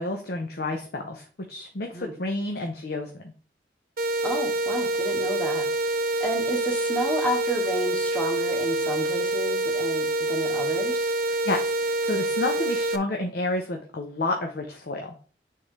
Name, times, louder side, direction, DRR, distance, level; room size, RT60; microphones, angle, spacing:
voice 1, 0.0-3.1 11.4-15.1, left 2 dB, 60° left, 2 dB, 0.8 m, -30 dB
sound 1, 4.0-13.0, right 2 dB, 55° right, 0.5 m, -26 dB
voice 2, 4.2-5.9 6.2-11.1, equal, 10° left, 0 dB, 1.5 m, -31 dB
9.0 x 3.8 x 3.2 m, 0.41 s
head